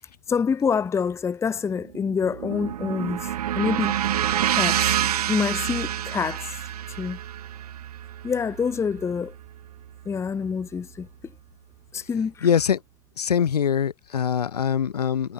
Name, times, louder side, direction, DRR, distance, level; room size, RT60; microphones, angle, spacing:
voice 1, 0.3-4.0 4.5-6.6 7.0-7.2 8.2-9.3 10.1-11.1 11.9-12.5, left 6 dB, 15° left, 0.6 m, -27 dB
sound 1, 1.8-10.0, right 11 dB, 75° right, 0.7 m, -28 dB
voice 2, 12.4-12.8 13.2-15.3, left 8 dB, 85° left, 1.2 m, -23 dB
hypercardioid pair, 95°, 20 cm